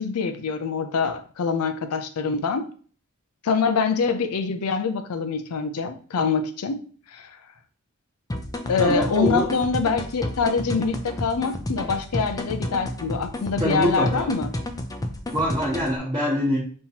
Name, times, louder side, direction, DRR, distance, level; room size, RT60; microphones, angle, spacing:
voice 1, 0.0-2.6 3.4-6.8 7.1-7.4 8.7-14.5, left 5 dB, 90° left, 8 dB, 0.5 m, -25 dB
sound 1, 8.3-16.0, left 1 dB, 15° left, 0.4 m, -31 dB
voice 2, 8.8-9.5 13.6-14.3 15.3-16.6, equal, 20° right, -8 dB, 1.1 m, -24 dB
5.3 x 2.9 x 2.8 m, 0.44 s
head